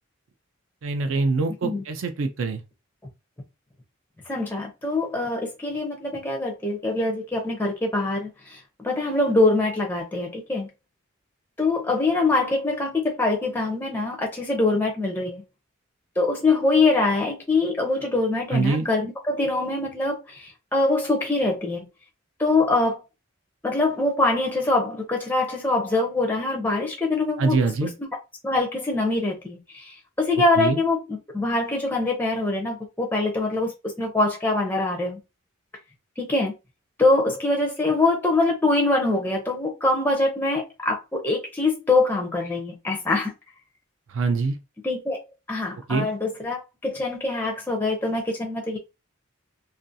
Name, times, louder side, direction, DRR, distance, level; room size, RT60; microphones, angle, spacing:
voice 1, 0.8-2.6 18.5-18.9 27.4-27.9 30.6-30.8 44.1-44.6 45.9-46.1, right 4 dB, 65° right, 0.4 m, -24 dB
voice 2, 4.3-10.7 11.6-15.4 16.2-21.9 22.4-23.0 23.6-27.6 28.4-31.0 31.3-35.2 36.2-36.5 37.0-43.3 44.8-45.2 45.5-48.8, left 2 dB, 10° left, 0.4 m, -24 dB
2.4 x 2.3 x 2.6 m
head